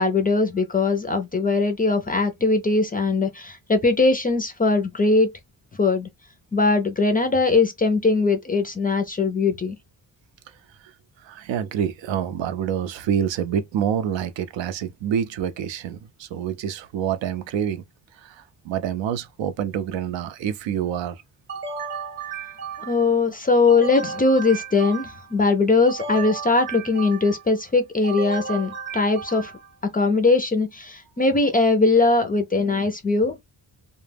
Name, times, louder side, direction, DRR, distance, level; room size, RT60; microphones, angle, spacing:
voice 1, 0.0-5.3 5.8-6.1 6.5-9.7 22.8-29.5 29.9-33.4, left 3 dB, 20° left, 0.3 m, -20 dB
voice 2, 11.2-17.8 18.2-21.2, right 9 dB, 80° right, 0.5 m, -27 dB
sound 1, 21.5-23.2 23.7-25.4 25.9-27.5 28.0-29.7, right 5 dB, 25° right, 0.7 m, -34 dB
2.1 x 2.1 x 3.2 m
cardioid pair, 130°, 44 cm